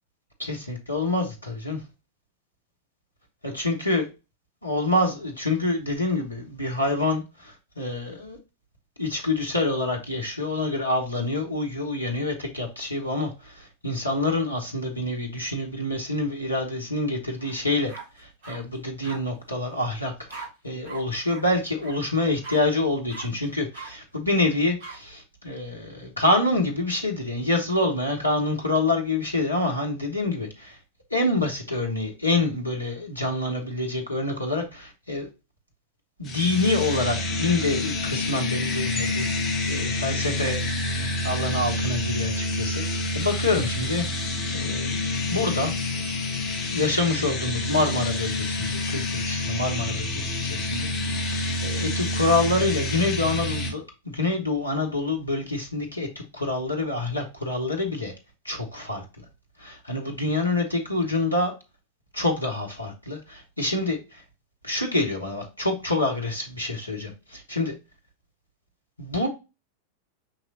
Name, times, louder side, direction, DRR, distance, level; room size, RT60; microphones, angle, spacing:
voice 1, 0.4-1.8 3.4-4.1 4.6-8.4 9.0-17.9 18.2-30.7 31.1-35.3 36.2-40.6 41.0-44.1 44.5-45.0 45.3-45.7 46.7-58.1 58.4-59.0 59.6-61.5 62.1-64.2 64.6-67.7 69.0-69.3, left 2 dB, 85° left, 1 dB, 0.9 m, -27 dB
sound 1, 17.4-17.5 17.9-18.6 19.0-19.2 20.3-20.5 20.8-21.0 21.3-21.4 21.8-21.9 22.4-22.6 23.1-23.2 23.7-23.9 24.8-25.0, right 4 dB, 55° right, 2.3 m, -39 dB
sound 2, 36.2-53.7, left 1 dB, 30° left, 1.3 m, -28 dB
5.6 x 3.0 x 2.7 m, 0.28 s
figure-of-eight pair, 90°, 0 cm